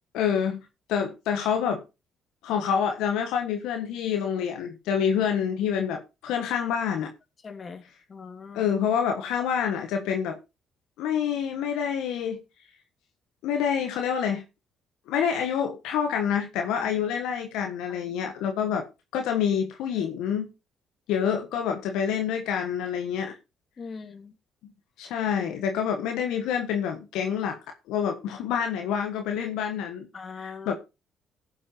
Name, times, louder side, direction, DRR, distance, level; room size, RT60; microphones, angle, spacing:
voice 1, 0.1-0.6 0.9-1.8 2.4-7.1 8.5-10.4 11.0-12.4 13.4-14.4 15.1-18.8 19.1-20.5 21.1-23.4 25.0-27.6 27.9-30.1 30.4-30.8, left 8 dB, 80° left, 1.5 m, -27 dB
voice 2, 7.4-7.8 8.1-8.6 17.9-18.0 23.8-24.3 30.1-30.8, left 5 dB, 40° left, 2.7 m, -41 dB
15.5 x 8.1 x 2.8 m
supercardioid pair, 70°, 0 cm